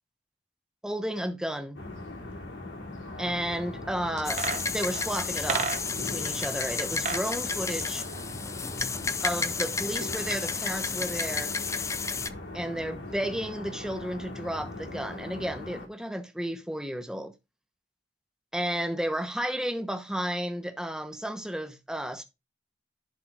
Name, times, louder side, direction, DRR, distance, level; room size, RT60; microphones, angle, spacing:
voice 1, 0.8-1.8 3.2-8.1 9.2-11.5 12.5-17.3 18.5-22.2, equal, 5° right, 0.9 m, -33 dB
sound 1, 1.7-15.9, left 2 dB, 80° left, 3.1 m, -40 dB
sound 2, 4.2-12.3, left 5 dB, 15° left, 0.4 m, -32 dB
sound 3, 4.2-6.2 6.8-7.3 7.6-8.9 9.2-9.3, right 5 dB, 40° right, 0.8 m, -34 dB
11.0 x 3.9 x 4.6 m
head